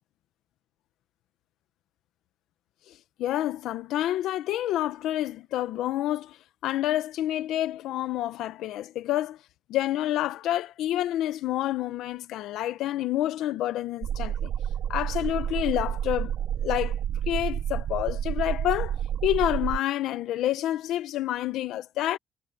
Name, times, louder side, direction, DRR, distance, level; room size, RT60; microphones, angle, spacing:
voice 1, 3.2-6.4 6.6-9.4 9.7-14.5 14.9-16.3 16.6-17.0 17.3-19.0 19.2-22.2, left 13 dB, 85° left, 1.1 m, -28 dB
sound 1, 14.0-19.8, right 9 dB, 70° right, 1.2 m, -30 dB
cardioid pair, 90°, 0 cm